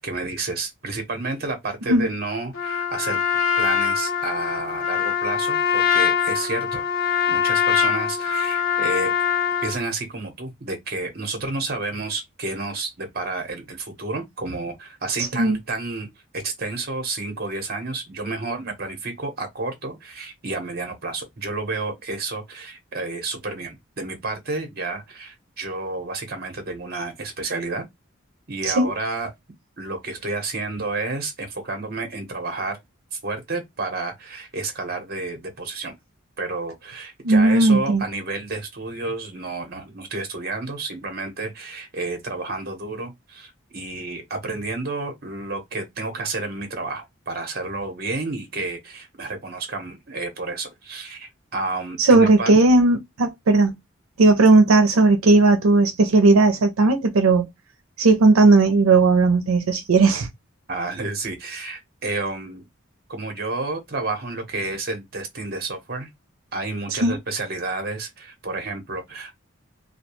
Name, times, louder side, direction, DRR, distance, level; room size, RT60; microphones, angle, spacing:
voice 1, 0.0-3.2 3.6-6.8 7.3-9.1 9.6-27.8 28.5-29.3 29.8-32.8 33.1-35.9 36.4-52.5 60.7-62.6 63.1-66.1 66.5-69.3, right 3 dB, 50° right, 0.8 m, -30 dB
Trumpet, 2.5-9.8, left 7 dB, 75° left, 0.7 m, -23 dB
voice 2, 37.2-38.0 52.0-53.7 54.2-57.5 58.0-60.3 67.0-67.2, right 3 dB, 85° right, 0.5 m, -16 dB
2.2 x 2.2 x 2.9 m
head